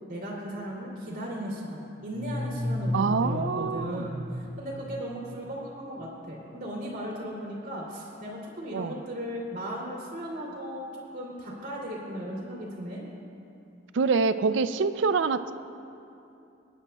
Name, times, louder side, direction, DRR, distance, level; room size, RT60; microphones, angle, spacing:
voice 1, 0.1-13.0, equal, 45° right, -4 dB, 2.7 m, -36 dB
sound 1, 2.1-5.8, left 1 dB, 55° left, 1.5 m, -34 dB
voice 2, 2.9-4.1 8.7-8.9 13.9-15.5, right 4 dB, 80° right, 12 dB, 0.4 m, -25 dB
24.0 x 9.9 x 2.3 m, 2.7 s
head